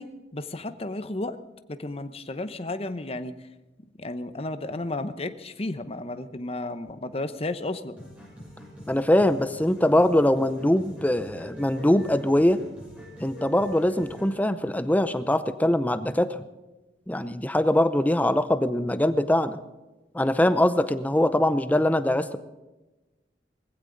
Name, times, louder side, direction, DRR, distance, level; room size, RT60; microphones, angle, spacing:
voice 1, 0.0-1.4 1.7-3.3 4.0-8.0, left 2 dB, 35° left, 10 dB, 0.9 m, -33 dB
sound 1, 8.0-14.4, equal, 5° right, 7.0 m, -45 dB
voice 2, 8.9-12.6 13.2-16.4 17.1-19.6 20.1-22.4, left 1 dB, 10° left, 12 dB, 0.6 m, -22 dB
20.0 x 15.5 x 3.9 m, 1.1 s
head